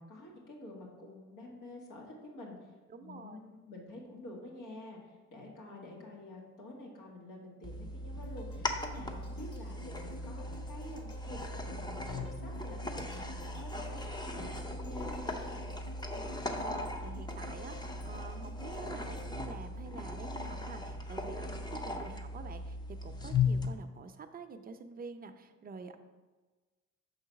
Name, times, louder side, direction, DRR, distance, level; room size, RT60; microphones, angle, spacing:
voice 1, 0.0-2.7 3.0-15.7, left 1 dB, 80° left, -2 dB, 1.8 m, -48 dB
voice 2, 2.9-3.4 16.1-26.0, right 4 dB, 30° right, 7 dB, 0.6 m, -48 dB
sound 1, 7.6-23.7, left 3 dB, 15° left, 0.6 m, -38 dB
sound 2, 8.2-20.4 20.8-20.9, left 3 dB, 50° left, 1.9 m, -52 dB
5.6 x 4.0 x 5.7 m, 1.3 s
cardioid pair, 90°, 30 cm